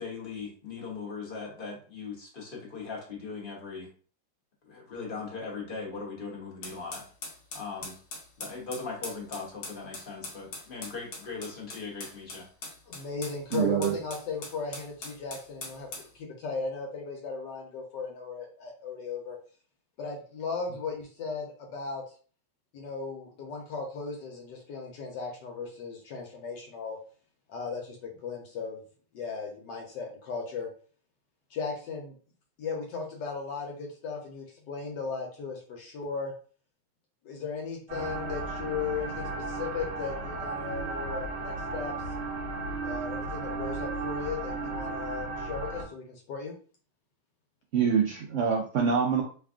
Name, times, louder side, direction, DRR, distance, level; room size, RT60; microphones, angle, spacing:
voice 1, 0.0-3.9 4.6-7.0 7.5-8.0 8.4-12.5, left 4 dB, 35° left, -2 dB, 1.0 m, -39 dB
sound 1, 6.6-16.1, left 3 dB, 60° left, 1.4 m, -42 dB
voice 2, 12.9-19.4 20.0-22.0 22.7-27.0 27.5-28.8 29.1-30.7 31.5-32.1 32.6-36.3 37.2-41.9 42.8-46.6, left 4 dB, 80° left, 0 dB, 1.4 m, -36 dB
voice 3, 13.5-13.9 47.7-49.2, right 6 dB, 75° right, 0 dB, 0.7 m, -25 dB
sound 2, 37.9-45.8, right 3 dB, 45° right, 1.0 m, -35 dB
3.4 x 2.4 x 3.6 m, 0.41 s
omnidirectional pair, 1.9 m